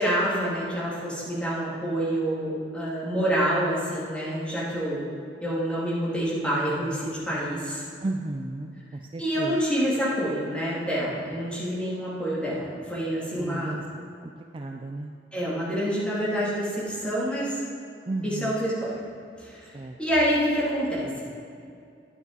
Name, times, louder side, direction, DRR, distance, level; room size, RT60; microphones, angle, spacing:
voice 1, 0.0-5.0 5.4-7.8 9.2-13.8 15.3-17.6 18.2-18.9 19.4-21.2, equal, 5° left, -8 dB, 2.6 m, -27 dB
voice 2, 8.0-9.6 13.3-15.2 18.1-18.6 19.7-19.9, right 2 dB, 30° right, 3 dB, 0.4 m, -34 dB
11.0 x 9.6 x 4.0 m, 2.4 s
head